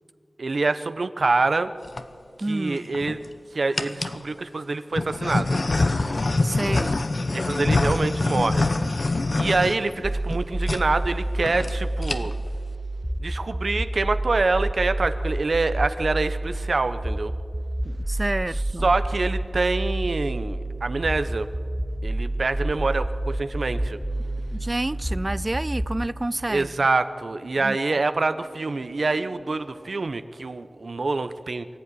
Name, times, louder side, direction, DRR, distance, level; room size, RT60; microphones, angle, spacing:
voice 1, 0.4-1.7 2.5-3.2 3.5-5.6 7.3-8.7 9.3-12.3 13.2-17.3 18.8-21.5 22.0-24.0 26.5-31.7, right 3 dB, 75° right, 1.0 m, -25 dB
sound 1, 1.6-2.0 2.7-3.3 3.7-4.2 4.9-10.4 10.6-10.8 11.1-11.2 11.4-11.7 12.0-12.5, left 2 dB, 65° left, 1.1 m, -25 dB
voice 2, 2.4-3.0 6.4-7.0 17.8-18.9 24.5-26.7 27.6-27.8, right 2 dB, 35° right, 0.5 m, -29 dB
sound 2, 10.0-26.0, right 1 dB, 15° right, 1.2 m, -28 dB
sound 3, 17.6-30.1, left 1 dB, 45° left, 2.4 m, -50 dB
24.0 x 14.5 x 10.0 m
wide cardioid pair, 50°, 0 cm